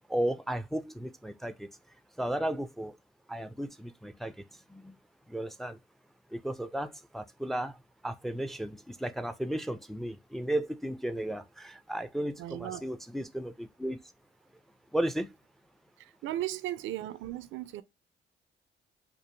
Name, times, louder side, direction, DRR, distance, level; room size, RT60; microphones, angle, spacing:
voice 1, 0.1-1.7 2.2-3.0 3.3-4.3 4.7-5.0 5.3-5.8 6.3-7.7 8.0-14.0 14.9-15.3, right 1 dB, ahead, 0.3 m, -34 dB
voice 2, 12.4-12.8 16.0-17.8, right 13 dB, 75° right, 0.4 m, -36 dB
4.4 x 2.4 x 2.6 m
cardioid pair, 90°, 20 cm